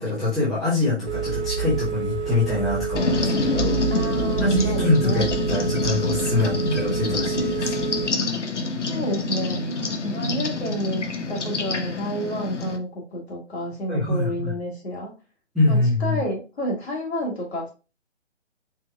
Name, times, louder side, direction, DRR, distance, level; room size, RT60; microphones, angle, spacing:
voice 1, 0.0-3.8 4.4-7.7 13.8-14.5 15.5-16.2, left 2 dB, ahead, -13 dB, 0.6 m, -24 dB
Telephone, 1.1-8.1, right 6 dB, 70° right, 0.7 m, -28 dB
sound 1, 2.9-12.8, left 3 dB, 85° left, 0.8 m, -27 dB
voice 2, 3.1-3.4 3.9-5.6 6.5-6.6 8.8-9.7 10.0-15.1 15.7-17.7, equal, 65° left, -1 dB, 1.9 m, -30 dB
4.5 x 2.9 x 2.3 m, 0.31 s
figure-of-eight pair, 140°, 35 cm